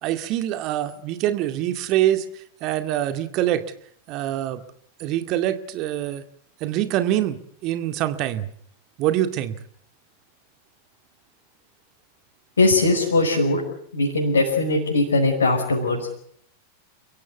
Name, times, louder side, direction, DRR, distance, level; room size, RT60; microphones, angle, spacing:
voice 1, 0.0-2.3 2.6-3.6 4.1-4.6 5.0-6.2 6.6-8.5 9.0-9.6, right 13 dB, 40° right, 9 dB, 2.1 m, -24 dB
voice 2, 12.6-13.6 13.9-16.1, left 2 dB, 75° left, -2 dB, 5.8 m, -20 dB
29.5 x 16.5 x 8.3 m, 0.67 s
figure-of-eight pair, 90°, 0 cm